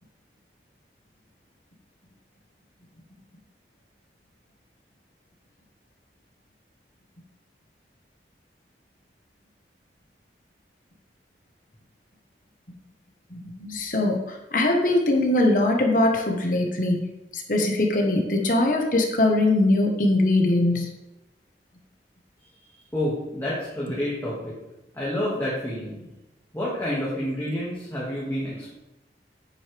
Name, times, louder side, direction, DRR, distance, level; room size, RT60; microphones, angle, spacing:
voice 1, 13.3-17.0 17.3-20.9, left 2 dB, 50° left, 1 dB, 1.4 m, -22 dB
voice 2, 22.9-24.5 24.9-26.0 26.5-28.7, left 1 dB, 15° left, -8 dB, 2.1 m, -29 dB
10.0 x 8.2 x 3.5 m, 0.98 s
head